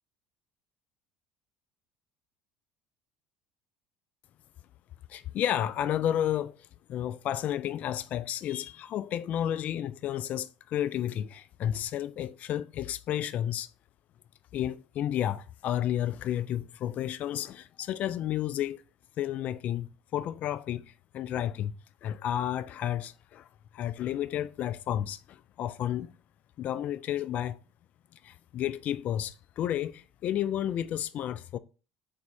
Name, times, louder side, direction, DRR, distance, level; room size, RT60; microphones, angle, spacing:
voice 1, 5.1-13.7 14.5-18.8 19.2-20.8 21.1-21.7 22.0-23.5 23.7-26.1 26.6-27.6 28.2-31.6, left 11 dB, 50° left, 0.3 m, -32 dB
3.6 x 3.4 x 3.3 m
hypercardioid pair, 75°, 3 cm